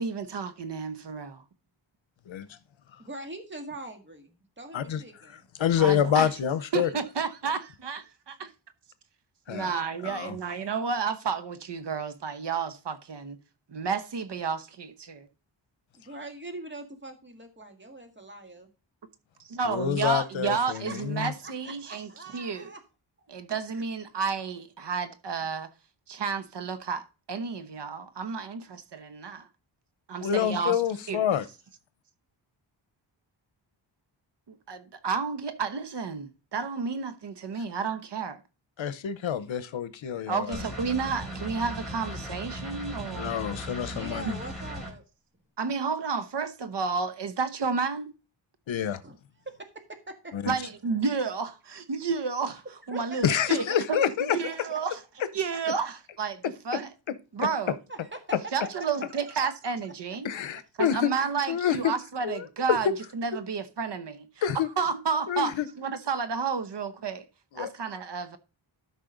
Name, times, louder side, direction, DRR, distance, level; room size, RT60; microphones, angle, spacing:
voice 1, 0.0-1.4 5.8-6.3 6.7-8.0 8.4-8.5 9.5-13.4 13.7-15.3 19.5-22.7 23.3-25.7 26.1-29.5 30.1-30.8 31.1-31.2 34.5-38.4 40.3-43.4 44.3-44.4 45.6-48.1 50.5-55.0 55.3-56.9 57.3-57.8 58.5-60.3 60.8-62.9 63.1-64.3 64.8-67.2 67.5-68.4, right 5 dB, 60° right, 1.0 m, -31 dB
voice 2, 3.0-5.5 15.9-18.7 20.6-22.8 23.2-23.3 43.9-45.0 49.0-49.2 49.5-50.3 52.9-53.0 53.6-53.8 54.7-54.8 57.9-58.2 59.3-59.4, right 2 dB, 25° right, 1.9 m, -43 dB
voice 3, 5.6-6.9 9.5-9.7 10.0-10.3 19.6-21.3 30.2-31.5 38.8-40.6 43.2-44.4 48.7-49.0 50.3-50.5 53.2-54.4 60.2-61.1 61.5-61.9 62.2-62.8 64.4-64.7 65.3-65.7 67.5-67.7, left 9 dB, 75° left, 0.9 m, -27 dB
sound 1, 40.5-44.9, equal, ahead, 3.7 m, -37 dB
12.5 x 5.4 x 3.9 m
wide cardioid pair, 140°, 46 cm